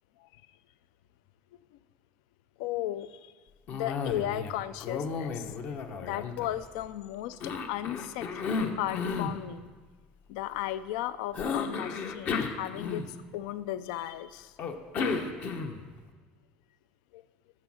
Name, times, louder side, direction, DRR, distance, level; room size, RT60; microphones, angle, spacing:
voice 1, 2.6-3.3 3.7-5.4 6.0-8.2 8.6-9.6 10.3-13.0 13.3-14.5 17.1-17.2, left 13 dB, 85° left, 15 dB, 0.4 m, -35 dB
Cough, 3.7-4.5 4.8-6.9 7.4-9.4 11.3-13.4 14.6-15.9, left 5 dB, 50° left, 1.1 m, -33 dB
11.5 x 7.4 x 6.3 m, 1.4 s
supercardioid pair, 120°, 4 cm